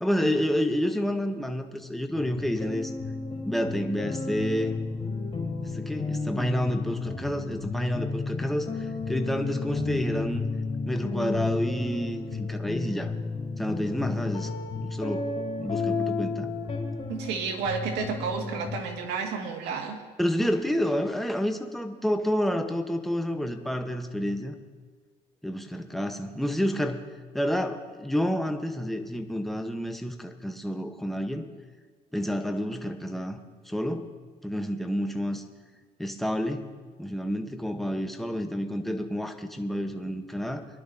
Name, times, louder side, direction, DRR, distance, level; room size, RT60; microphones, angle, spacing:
voice 1, 0.0-2.9 3.4-4.8 5.6-10.5 10.9-13.1 13.6-14.5 14.7-15.3 15.6-16.5 20.2-24.5 25.4-27.0 27.3-31.4 32.1-33.4 33.7-34.1 34.4-35.4 36.0-36.7 37.0-40.7, equal, ahead, 5 dB, 1.0 m, -29 dB
sound 1, 2.1-18.8, left 4 dB, 35° left, 4.0 m, -32 dB
voice 2, 17.1-20.0, right 5 dB, 80° right, 1 dB, 2.0 m, -31 dB
23.5 x 11.0 x 2.8 m, 1.5 s
cardioid pair, 110°, 17 cm